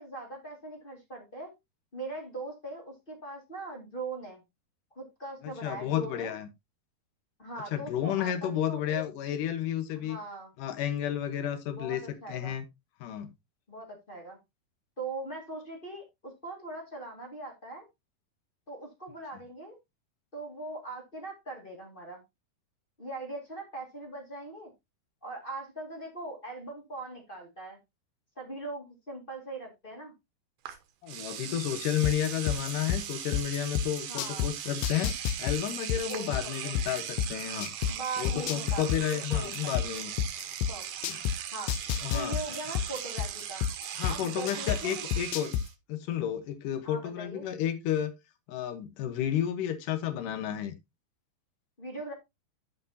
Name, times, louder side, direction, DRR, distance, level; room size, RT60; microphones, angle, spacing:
voice 1, 0.0-1.5 1.9-4.4 4.9-6.3 7.4-9.0 9.9-10.5 11.7-12.5 13.7-14.4 15.0-17.9 18.7-19.8 20.3-22.2 23.0-24.7 25.2-27.8 28.3-30.1 34.1-34.5 36.1-36.7 37.9-39.7 40.7-40.8 41.5-43.6 44.1-45.0 46.8-47.5 51.8-52.1, right 2 dB, 25° left, 1.3 m, -40 dB
voice 2, 5.4-6.5 7.7-10.2 10.6-12.0 12.3-12.7 13.0-13.3 31.0-37.7 38.2-40.1 41.1-41.2 42.0-42.4 44.0-45.5 45.9-48.1 48.5-50.7, left 10 dB, 65° left, 2.4 m, -32 dB
Engine / Domestic sounds home sounds, 30.7-30.8 31.1-45.7, right 10 dB, 80° right, 3.0 m, -39 dB
sound 1, 32.0-34.5 34.8-37.9 38.2-41.3 41.7-44.8 45.1-45.6, left 10 dB, 85° left, 2.7 m, -29 dB
11.5 x 6.1 x 2.8 m
omnidirectional pair, 4.5 m